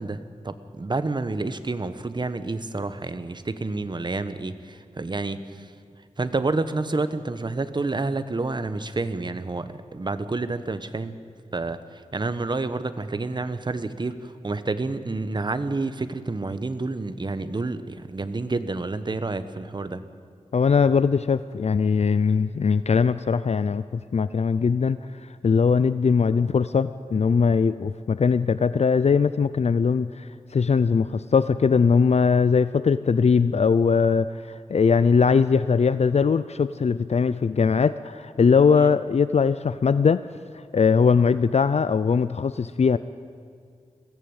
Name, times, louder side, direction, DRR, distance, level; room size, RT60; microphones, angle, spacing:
voice 1, 0.0-5.7 6.2-11.2 11.5-20.0 38.8-38.9, right 3 dB, 40° right, 11 dB, 1.1 m, -29 dB
voice 2, 20.5-23.8 24.1-25.0 25.4-30.3 30.5-40.2 40.7-43.0, left 5 dB, 60° left, 14 dB, 0.5 m, -20 dB
21.5 x 15.0 x 8.9 m, 2.2 s
wide cardioid pair, 95°, 12 cm